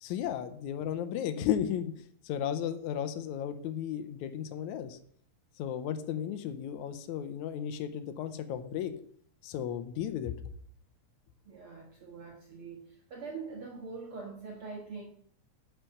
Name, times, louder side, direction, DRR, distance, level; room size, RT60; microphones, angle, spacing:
voice 1, 0.0-1.9 2.2-5.0 5.6-8.9 9.4-10.3, left 9 dB, 90° left, 9 dB, 2.1 m, -34 dB
voice 2, 11.5-15.0, right 4 dB, 55° right, -1 dB, 2.1 m, -43 dB
9.0 x 5.9 x 6.5 m, 0.62 s
omnidirectional pair, 3.3 m